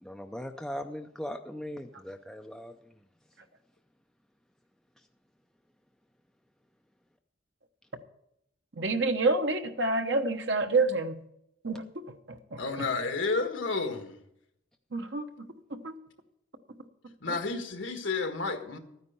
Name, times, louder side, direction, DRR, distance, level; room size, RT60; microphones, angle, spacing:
voice 1, 0.0-2.9, equal, ahead, 0.5 m, -39 dB
voice 2, 8.8-11.2 11.6-11.8 12.3-12.6 14.9-15.9 17.3-17.4, right 3 dB, 60° right, 1.1 m, -28 dB
voice 3, 12.6-14.2 17.2-18.8, left 4 dB, 70° left, 1.6 m, -31 dB
13.5 x 9.6 x 5.5 m
head